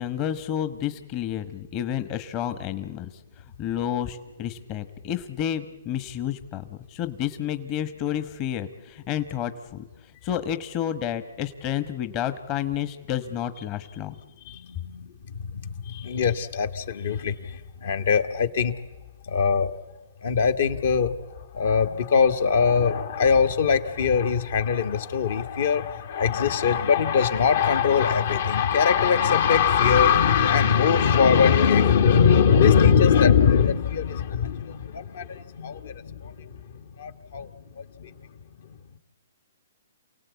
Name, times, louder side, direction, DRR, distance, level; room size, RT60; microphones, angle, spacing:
voice 1, 0.0-3.1 3.6-9.8 10.2-14.1, left 10 dB, 30° left, 10 dB, 1.2 m, -30 dB
voice 2, 14.5-18.8 19.2-19.7 20.2-21.1 21.5-38.1, left 6 dB, 60° left, 7 dB, 1.5 m, -22 dB
28.0 x 17.5 x 8.3 m, 1.3 s
hypercardioid pair, 135°, 0 cm